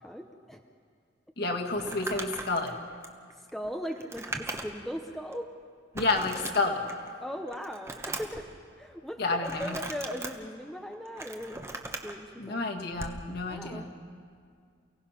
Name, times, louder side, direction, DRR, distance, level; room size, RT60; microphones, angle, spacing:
voice 1, 0.0-0.6 3.5-5.5 7.2-8.5 8.8-12.6 13.5-13.9, equal, ahead, 3 dB, 0.7 m, -39 dB
voice 2, 1.4-2.7 5.9-6.8 9.2-9.8 12.4-13.9, left 3 dB, 55° left, 2 dB, 1.8 m, -30 dB
Crumpling crinkling, 1.7-4.9 5.3-5.4 5.9-7.1 7.5-8.4 9.4-10.3 10.9-12.1 12.9-13.2, right 2 dB, 15° right, 1.1 m, -39 dB
29.0 x 17.0 x 5.8 m, 2.1 s
head